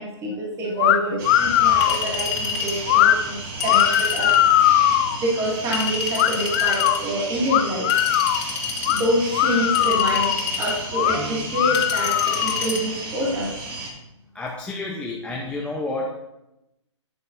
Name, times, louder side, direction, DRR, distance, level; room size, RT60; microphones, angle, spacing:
voice 1, 0.0-8.0 8.2-8.6 8.9-13.5, right 1 dB, 20° right, -4 dB, 2.3 m, -27 dB
sound 1, 0.8-1.0 1.2-2.0 2.9-3.1 3.6-5.2 6.2-7.0 7.5-8.4 8.8-9.0 9.3-10.4 10.9-11.2 11.5-12.7, left 12 dB, 35° left, 0.6 m, -19 dB
sound 2, 1.2-13.9, right 2 dB, 50° right, 3.1 m, -33 dB
Chink clink, 1.8-2.8 3.6-4.5 5.7-7.0 7.9-9.1 9.7-10.8 11.7-12.8, left 6 dB, 60° left, 2.4 m, -28 dB
voice 2, 14.3-16.1, left 2 dB, 5° left, -3 dB, 0.8 m, -30 dB
10.0 x 9.8 x 2.7 m, 0.91 s
hypercardioid pair, 135°, 16 cm